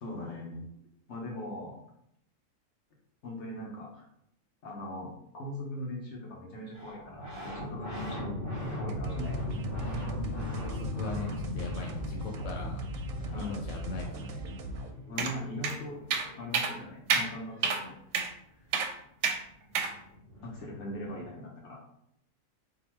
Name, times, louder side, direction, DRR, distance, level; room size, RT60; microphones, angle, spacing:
voice 1, 0.0-0.7 1.1-1.8 3.2-4.0 4.6-8.3 8.6-9.3 13.3-13.6 15.1-16.0 16.4-17.9 20.4-21.8, left 1 dB, 60° left, -2 dB, 1.0 m, -40 dB
sound 1, 6.7-17.1 19.2-19.3 19.5-21.3, left 1 dB, 15° left, 1.0 m, -39 dB
sound 2, 8.9-14.9, right 1 dB, 90° right, 1.0 m, -39 dB
voice 2, 10.5-12.9 13.2-14.5, left 3 dB, 85° left, 1 dB, 1.1 m, -40 dB
sound 3, 15.2-15.3 15.6-15.7 16.1-16.3 16.5-16.7 17.1-17.3 17.6-17.8 18.1-18.3 18.7-18.9 19.2-19.4 19.7-19.9, right 5 dB, 70° right, 0.8 m, -28 dB
3.8 x 2.3 x 4.3 m, 0.73 s
omnidirectional pair, 1.4 m